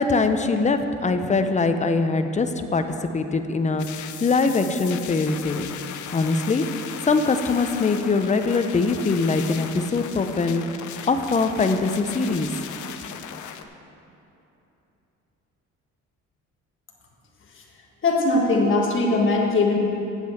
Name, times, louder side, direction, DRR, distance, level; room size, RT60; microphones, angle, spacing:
voice 1, 0.0-2.8 3.1-5.7 6.1-6.6 7.1-10.6 11.1-12.5, left 3 dB, 25° left, 8 dB, 0.7 m, -22 dB
sound 1, 3.8-13.6, left 9 dB, 75° left, 0.7 m, -37 dB
voice 2, 18.0-19.8, left 2 dB, 40° left, -2 dB, 1.7 m, -20 dB
7.7 x 7.2 x 7.7 m, 3.0 s
cardioid pair, 90°, 30 cm